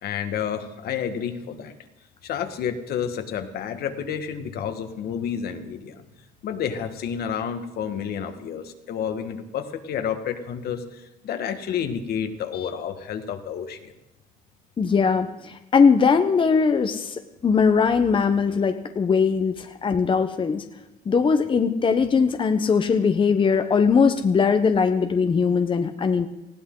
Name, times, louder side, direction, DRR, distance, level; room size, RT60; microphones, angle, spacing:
voice 1, 0.0-1.7 2.2-6.0 6.4-13.9, left 8 dB, 65° left, 7 dB, 1.6 m, -30 dB
voice 2, 14.8-20.6 21.0-26.3, left 5 dB, 30° left, 7 dB, 0.9 m, -20 dB
19.5 x 15.5 x 3.9 m, 0.95 s
cardioid pair, 110°, 17 cm